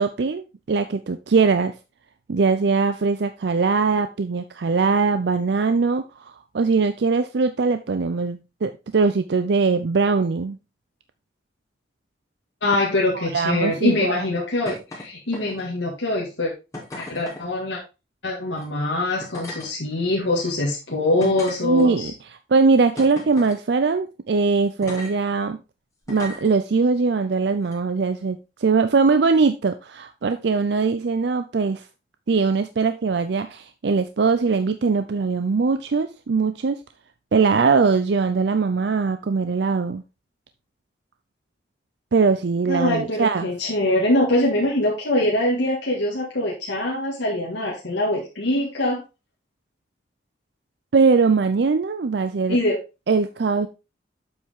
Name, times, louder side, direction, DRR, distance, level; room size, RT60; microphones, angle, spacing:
voice 1, 0.0-1.7 2.3-6.0 6.5-10.6 13.1-14.2 21.2-21.3 21.6-22.1 22.5-25.6 26.1-31.8 32.3-36.8 37.3-40.0 42.1-43.5 50.9-52.6 53.1-53.7, right 4 dB, 65° right, 9 dB, 0.5 m, -21 dB
voice 2, 12.6-16.5 17.0-17.8 18.2-22.1 42.7-49.0 52.5-52.8, left 1 dB, 80° left, -4 dB, 1.9 m, -23 dB
sound 1, 14.6-15.0 15.3-15.8 16.7-17.4 18.5-18.6 19.2-19.7 20.4-20.5 21.2-22.1 23.0-23.6 24.8-25.1 26.1-26.5 27.6-27.7, left 1 dB, 15° left, 2.6 m, -37 dB
7.9 x 5.5 x 3.6 m, 0.28 s
head